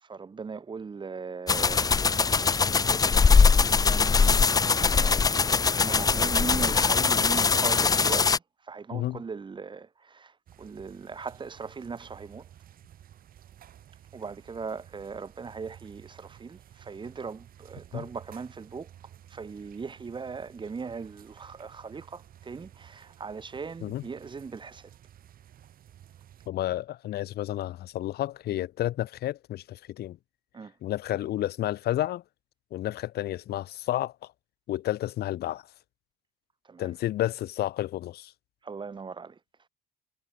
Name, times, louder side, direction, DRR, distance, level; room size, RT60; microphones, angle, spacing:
voice 1, 0.0-2.6 3.7-12.5 14.1-18.9 19.3-24.9 30.5-30.7 36.7-36.9 38.6-39.4, right 5 dB, 30° right, 3.8 m, -39 dB
sound 1, 1.5-8.4, left 5 dB, 20° left, 0.6 m, -22 dB
voice 2, 8.9-9.2 17.9-18.0 23.8-24.0 26.5-30.2 30.8-32.2 32.7-34.3 34.7-35.6 36.8-38.3, left 14 dB, 70° left, 5.0 m, -31 dB
sound 2, 10.5-26.5, right 11 dB, 60° right, 7.3 m, -53 dB
cardioid pair, 110°, 17 cm